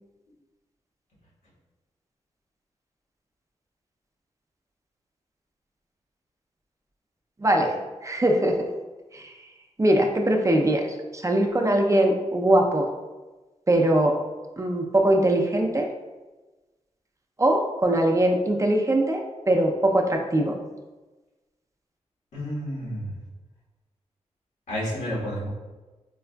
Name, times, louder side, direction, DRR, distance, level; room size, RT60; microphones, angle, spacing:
voice 1, 7.4-7.7 8.0-8.6 9.1-9.3 9.8-10.8 11.1-12.9 13.7-14.2 14.6-15.9 17.4-20.6, right 1 dB, 25° right, 2 dB, 0.5 m, -21 dB
voice 2, 22.3-23.1 24.7-25.5, equal, 85° left, -7 dB, 1.4 m, -30 dB
4.6 x 2.4 x 2.2 m, 1.2 s
cardioid pair, 50°, 12 cm